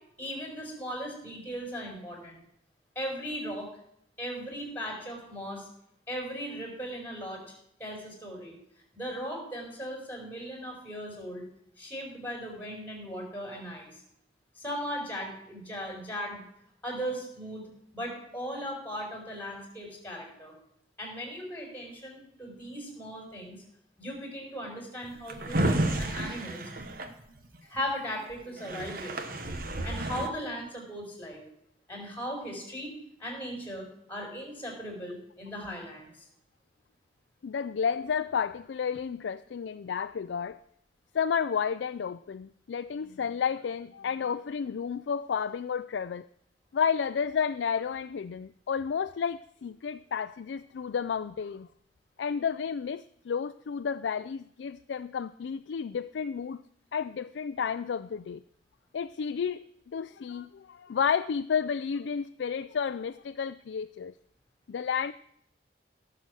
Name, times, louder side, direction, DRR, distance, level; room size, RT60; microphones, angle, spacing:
voice 1, 0.2-2.4 2.9-3.7 4.2-5.7 6.1-7.4 7.8-8.6 8.9-11.4 11.8-14.0 14.6-16.4 16.8-20.5 21.0-23.6 24.0-26.7 27.6-29.2 29.8-31.4 31.9-32.9 33.2-36.2, equal, 10° left, 1 dB, 4.8 m, -38 dB
Drawer open or close, 25.0-27.8 28.3-28.4 28.6-30.3, right 1 dB, 55° right, 1.2 m, -31 dB
voice 2, 37.4-40.6 41.1-46.3 46.7-51.7 52.2-56.6 56.9-58.4 58.9-64.1 64.7-65.1, left 6 dB, 90° left, 11 dB, 0.4 m, -31 dB
17.0 x 6.8 x 6.3 m, 0.72 s
head